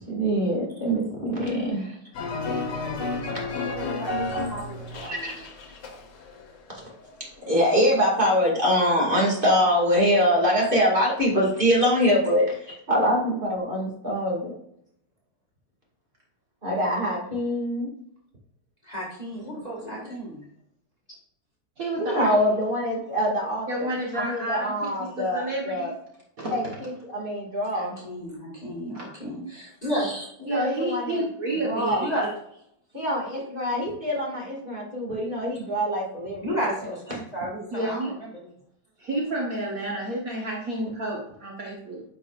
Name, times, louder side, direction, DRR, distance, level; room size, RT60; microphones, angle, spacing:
voice 1, 0.1-2.0 5.0-5.5 6.7-6.8 7.5-14.5 16.6-17.9 19.5-19.6 20.0-20.1 22.0-25.9 26.5-28.0 30.4-31.2 31.6-32.1 32.9-36.5 36.8-36.9, equal, 25° right, -3 dB, 2.3 m, -24 dB
sound 1, 2.1-6.6 6.8-7.3, left 3 dB, 65° left, 1.7 m, -31 dB
voice 2, 3.6-5.4 18.8-20.5 27.7-30.3 32.0-32.3 36.4-38.5, equal, 20° left, -4 dB, 1.9 m, -33 dB
voice 3, 21.8-22.6 23.7-25.9 26.4-26.8 28.9-29.1 30.5-32.1 37.7-38.1 39.0-42.0, right 1 dB, 50° right, -2 dB, 1.6 m, -30 dB
9.3 x 5.4 x 2.5 m, 0.74 s
omnidirectional pair, 2.1 m